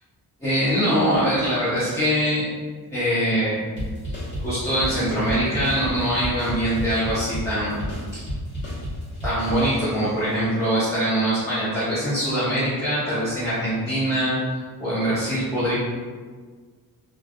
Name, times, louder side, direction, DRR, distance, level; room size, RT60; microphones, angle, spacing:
voice 1, 0.4-2.5 2.9-3.7 4.3-7.8 8.1-8.3 9.2-14.4 14.8-15.7, equal, 10° left, -13 dB, 0.9 m, -23 dB
sound 1, 3.8-10.1, equal, 30° left, 1.1 m, -31 dB
3.1 x 2.5 x 2.4 m, 1.5 s
wide cardioid pair, 165°, 38 cm